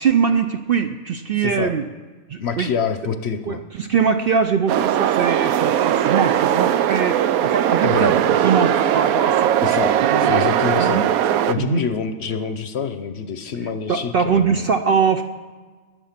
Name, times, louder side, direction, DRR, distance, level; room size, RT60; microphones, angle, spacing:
voice 1, 0.0-1.8 2.3-2.7 3.5-9.5 10.0-10.4 10.8-11.1 11.6-11.8 13.9-15.2, right 6 dB, 60° right, 8 dB, 0.6 m, -22 dB
voice 2, 1.4-1.7 2.4-3.6 7.8-8.1 9.6-11.0 11.4-14.7, left 6 dB, 55° left, 9 dB, 0.9 m, -26 dB
sound 1, 4.7-11.5, right 10 dB, 85° right, 1.0 m, -19 dB
20.0 x 7.5 x 5.8 m, 1.4 s
omnidirectional pair, 1.5 m